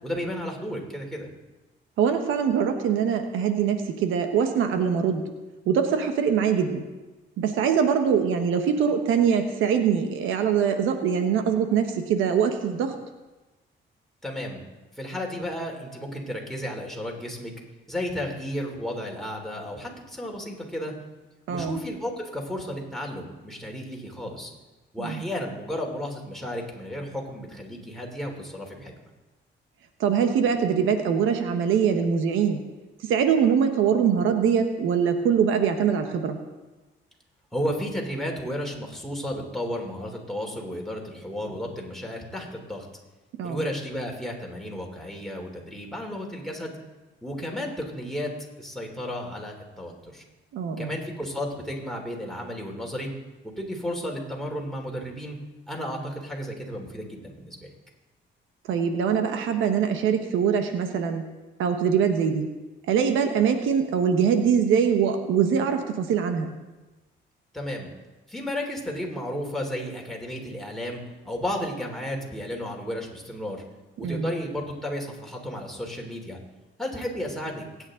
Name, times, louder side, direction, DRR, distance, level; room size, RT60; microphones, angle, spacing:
voice 1, 0.0-1.3 14.2-14.6 14.9-17.5 17.9-20.9 21.5-24.5 24.9-28.9 37.5-42.9 43.4-46.7 47.2-48.3 48.6-50.2 50.8-53.1 53.4-55.4 55.7-57.7 67.5-67.9 68.3-73.6 74.0-76.4 76.8-77.6, equal, ahead, 0 dB, 3.4 m, -33 dB
voice 2, 2.0-5.2 5.7-6.8 7.4-13.0 21.5-21.8 25.0-25.3 30.0-32.6 33.0-36.4 43.4-43.6 50.5-50.9 58.7-61.2 61.6-62.5 62.9-66.5 74.0-74.3, right 7 dB, 90° right, 7 dB, 1.2 m, -23 dB
23.0 x 9.6 x 3.8 m, 1.1 s
cardioid pair, 90°, 20 cm